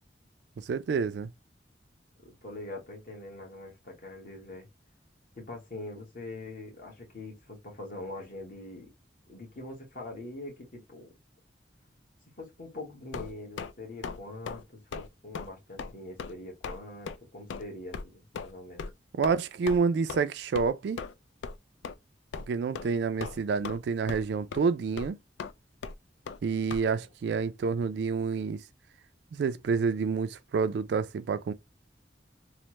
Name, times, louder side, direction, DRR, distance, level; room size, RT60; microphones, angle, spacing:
voice 1, 0.6-1.3 19.1-21.0 22.5-25.2 26.4-28.6 29.3-31.5, right 5 dB, 65° right, 0.3 m, -28 dB
voice 2, 2.2-4.7 5.3-8.9 9.3-11.1 12.4-18.9, left 2 dB, 50° left, 1.2 m, -43 dB
sound 1, 13.1-13.7 14.0-14.2 14.4-14.6 14.9-15.1 15.3-15.5 15.8-15.9 16.2-16.3 16.6-16.8 17.1-17.2 17.5-17.6 17.9-18.0 18.3-18.5 18.8-18.9 19.2-19.3 19.7-19.8 20.1-20.2 20.5-20.7 21.0-21.1 21.4-21.6 21.8-21.9 22.3-22.5 22.7-22.9 23.2-23.8 24.1-24.3 24.5-24.6 25.0-25.1 25.4-25.5 25.8-25.9 26.3-26.4 26.7-26.8, left 5 dB, 85° left, 0.3 m, -37 dB
3.2 x 2.0 x 2.9 m
head